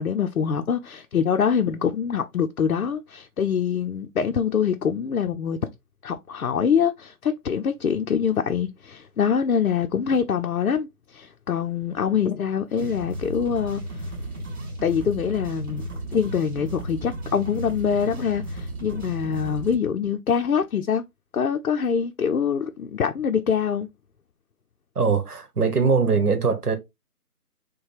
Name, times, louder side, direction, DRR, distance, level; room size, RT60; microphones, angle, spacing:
voice 1, 0.0-5.7 6.0-14.1 14.8-15.8 16.1-21.0 21.3-23.9, left 7 dB, 70° left, 0.6 m, -24 dB
sound 1, 12.7-19.7, right 1 dB, 50° right, 2.6 m, -34 dB
voice 2, 24.9-26.8, right 5 dB, 75° right, 1.2 m, -21 dB
6.5 x 2.2 x 3.3 m
figure-of-eight pair, 170°, 46 cm